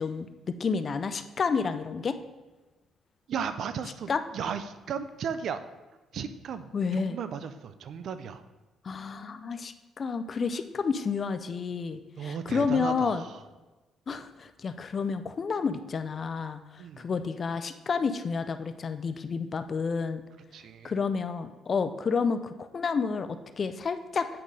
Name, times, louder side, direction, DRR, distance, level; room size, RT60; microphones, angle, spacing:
voice 1, 0.0-2.2 4.1-4.2 6.7-7.2 8.8-13.2 14.1-20.2 20.8-24.3, left 5 dB, 45° left, 10 dB, 0.5 m, -30 dB
voice 2, 3.3-5.6 6.1-8.4 12.2-13.4 16.8-17.0 20.5-20.9, right 7 dB, 65° right, 11 dB, 0.5 m, -35 dB
8.6 x 5.2 x 3.3 m, 1.2 s
cardioid pair, 90°, 0 cm